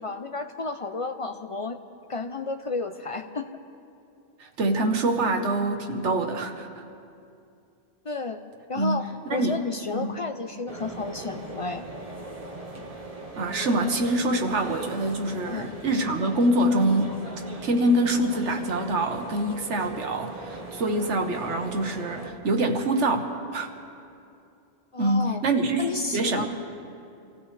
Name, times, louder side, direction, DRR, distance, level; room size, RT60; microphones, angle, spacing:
voice 1, 0.0-1.8 2.1-3.5 8.1-8.4 8.7-11.8 15.4-15.7 24.9-25.4 25.8-26.5, left 3 dB, 45° left, 7 dB, 0.4 m, -32 dB
voice 2, 4.4-6.7 8.7-9.6 9.9-10.2 13.4-17.2 17.6-23.7 25.0-26.5, right 1 dB, 80° right, 5 dB, 1.4 m, -25 dB
sound 1, 10.7-22.3, right 2 dB, 30° right, 1.3 m, -40 dB
26.0 x 16.0 x 3.3 m, 2.6 s
omnidirectional pair, 1.2 m